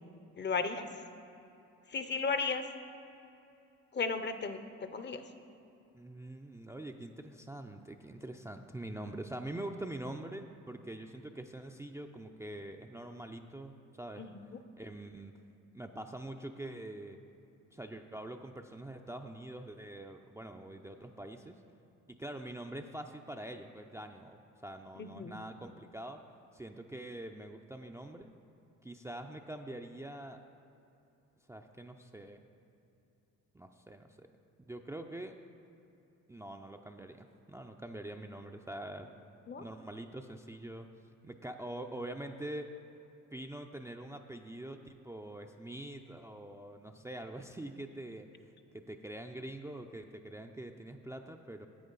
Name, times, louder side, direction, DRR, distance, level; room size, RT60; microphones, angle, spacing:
voice 1, 0.4-0.8 1.9-2.7 3.9-5.2 14.2-14.3 25.0-25.4 39.5-39.7, left 4 dB, 35° left, 9 dB, 0.7 m, -35 dB
voice 2, 5.9-14.3 14.8-15.3 15.7-17.2 17.7-21.6 22.1-26.2 26.5-28.3 28.8-30.4 31.5-32.4 33.5-34.3 34.7-35.4 36.3-39.1 39.6-40.9 41.2-42.7 43.3-51.7, right 1 dB, 10° right, 4 dB, 0.4 m, -44 dB
11.0 x 7.9 x 3.9 m, 2.9 s
supercardioid pair, 75°, 33 cm